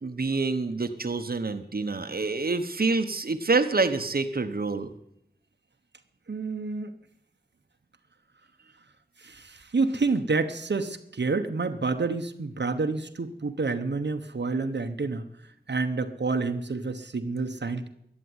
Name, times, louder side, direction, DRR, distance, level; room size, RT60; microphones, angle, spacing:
voice 1, 0.0-4.9, right 3 dB, 60° right, 8 dB, 1.0 m, -27 dB
voice 2, 6.3-6.9 9.2-15.2 15.7-17.9, right 3 dB, 85° right, 7 dB, 1.0 m, -28 dB
14.0 x 9.9 x 9.6 m, 0.77 s
wide cardioid pair, 60°, 18 cm